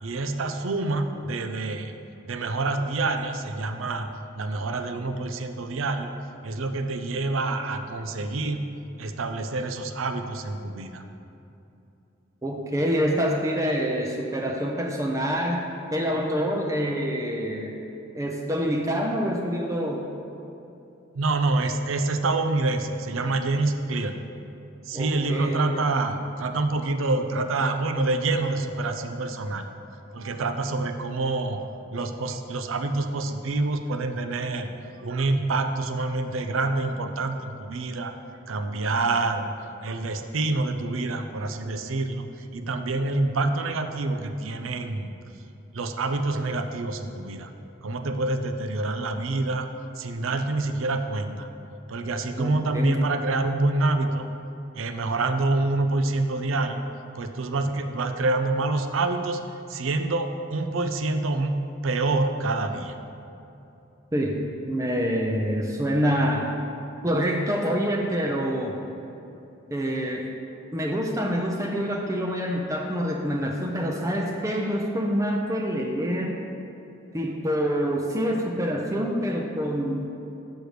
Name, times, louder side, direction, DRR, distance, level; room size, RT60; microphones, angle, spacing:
voice 1, 0.0-1.9 2.3-4.1 4.4-6.1 6.4-8.6 9.0-11.0 21.1-24.2 24.9-29.7 30.1-34.7 35.0-38.1 38.5-39.5 39.8-45.1 45.7-47.5 47.8-49.7 50.0-51.5 51.9-54.3 54.7-56.8 57.2-59.4 59.7-61.6 61.8-63.0, right 2 dB, 85° right, 7 dB, 0.5 m, -27 dB
voice 2, 12.4-15.6 15.9-17.8 18.2-20.1 24.9-25.7 52.4-53.0 64.1-66.5 67.0-68.8 69.7-70.3 70.7-76.4 77.1-80.1, equal, 15° right, 1 dB, 0.5 m, -26 dB
6.5 x 6.3 x 4.9 m, 2.8 s
head